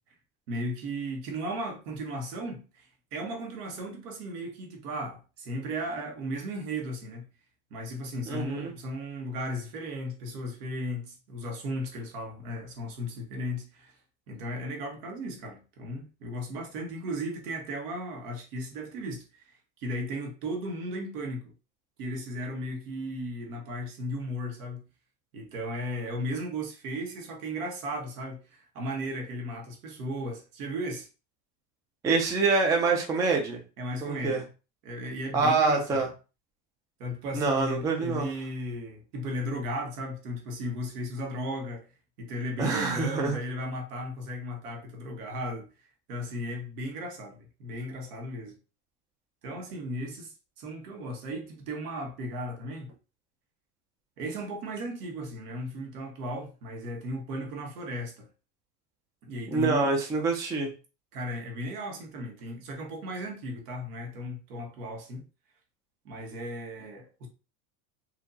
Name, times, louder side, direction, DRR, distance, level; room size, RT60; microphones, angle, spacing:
voice 1, 0.5-7.3 7.7-13.9 14.3-21.5 22.0-24.8 25.3-31.1 33.8-34.4 34.8-36.1 37.0-41.9 42.2-45.7 46.1-48.5 49.4-52.9 54.2-58.3 59.3-59.9 61.1-65.2 66.0-67.3, equal, 85° right, 1.6 m, -36 dB
voice 2, 8.3-8.7 32.0-33.6 34.0-34.4 35.3-36.1 37.3-38.3 42.6-43.4 59.5-60.7, right 4 dB, 10° right, 0.3 m, -26 dB
4.4 x 2.8 x 2.7 m
supercardioid pair, 140°, 45 cm